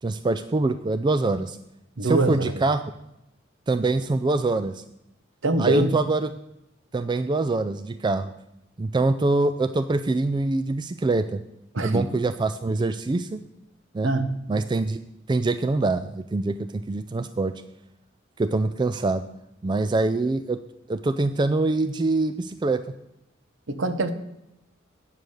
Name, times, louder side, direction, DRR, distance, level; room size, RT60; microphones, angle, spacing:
voice 1, 0.0-1.6 2.0-2.8 3.7-4.8 5.6-6.3 6.9-8.3 8.8-11.4 11.8-13.4 13.9-14.1 14.5-15.0 15.3-17.5 18.4-19.3 19.6-20.6 20.9-22.8, right 2 dB, 20° right, 10 dB, 0.3 m, -24 dB
voice 2, 2.0-2.5 5.4-5.9 11.7-12.1 14.0-14.3 23.7-24.1, right 2 dB, 65° right, 9 dB, 0.9 m, -23 dB
9.0 x 7.1 x 6.4 m, 0.85 s
head